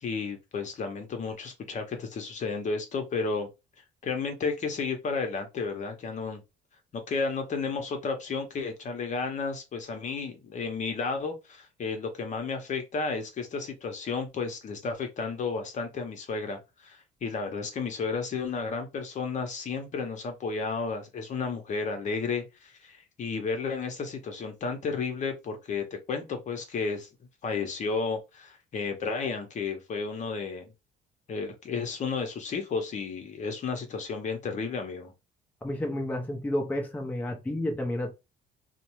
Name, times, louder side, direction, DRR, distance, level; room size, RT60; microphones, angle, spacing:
voice 1, 0.0-3.5 4.0-6.4 6.9-27.1 27.4-30.7 31.3-35.1, left 4 dB, 45° left, 0.8 m, -32 dB
voice 2, 35.6-38.1, left 1 dB, 10° left, 0.6 m, -31 dB
2.6 x 2.0 x 3.0 m
cardioid pair, 110°, 17 cm